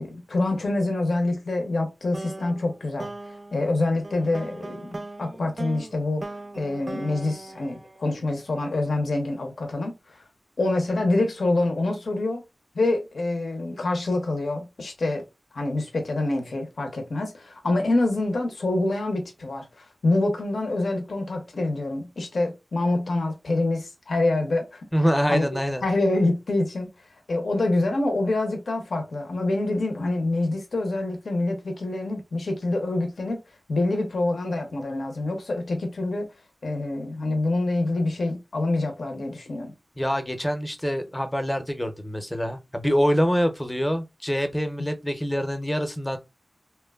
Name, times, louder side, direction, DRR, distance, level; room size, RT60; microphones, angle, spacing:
voice 1, 0.0-3.1 3.5-6.2 6.6-10.2 10.6-12.4 12.7-15.2 15.5-24.9 25.3-25.5 25.8-26.9 27.3-33.4 33.7-36.3 36.6-39.7, left 2 dB, 90° left, 0.6 m, -26 dB
sound 1, 2.1-8.5, right 2 dB, 50° right, 0.3 m, -39 dB
voice 2, 24.9-25.8 40.0-46.2, equal, 15° left, 0.5 m, -25 dB
2.9 x 2.1 x 2.2 m
wide cardioid pair, 55°, 0 cm